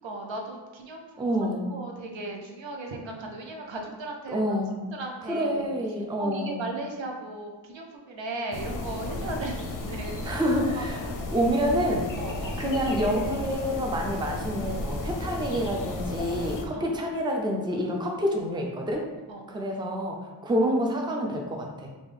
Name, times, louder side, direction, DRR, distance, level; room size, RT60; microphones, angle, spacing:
voice 1, 0.0-4.6 4.9-10.4 10.7-11.6 12.1-12.6 16.7-16.9 19.3-19.6, right 2 dB, 80° right, 1 dB, 0.7 m, -37 dB
voice 2, 1.2-1.7 4.3-4.8 5.3-6.6 10.2-11.0 11.3-12.0 12.6-19.0 19.5-21.9, equal, 10° right, 1 dB, 0.4 m, -27 dB
sound 1, 8.5-16.7, left 2 dB, 45° left, 0.5 m, -33 dB
3.6 x 2.6 x 3.3 m, 1.2 s
wide cardioid pair, 105°, 44 cm